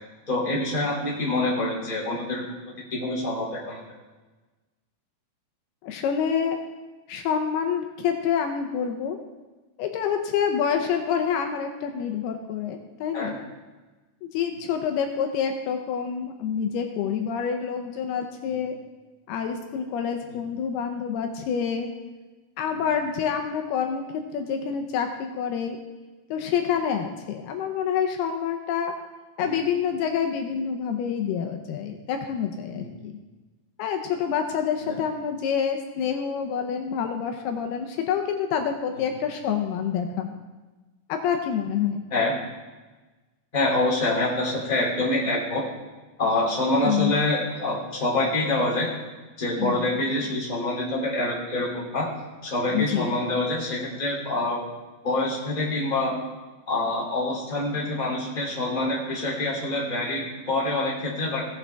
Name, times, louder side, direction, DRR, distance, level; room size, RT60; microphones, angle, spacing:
voice 1, 0.3-3.8 13.1-13.3 18.4-18.6 20.3-20.4 22.7-22.8 29.4-29.5 32.7-32.9 34.8-35.0 42.1-42.3 43.5-45.6 46.2-48.9 49.4-52.1 52.4-54.6 55.0-56.1 56.7-61.4, left 2 dB, 15° left, -5 dB, 2.2 m, -26 dB
voice 2, 5.8-6.6 7.1-9.2 9.8-13.4 14.2-18.8 19.3-21.9 22.6-25.8 26.3-28.9 29.4-33.1 33.8-40.4 41.1-42.0 46.8-47.1 49.6-49.8 52.7-53.2, left 7 dB, 80° left, 5 dB, 2.6 m, -27 dB
16.5 x 8.5 x 3.5 m, 1.2 s
omnidirectional pair, 4.7 m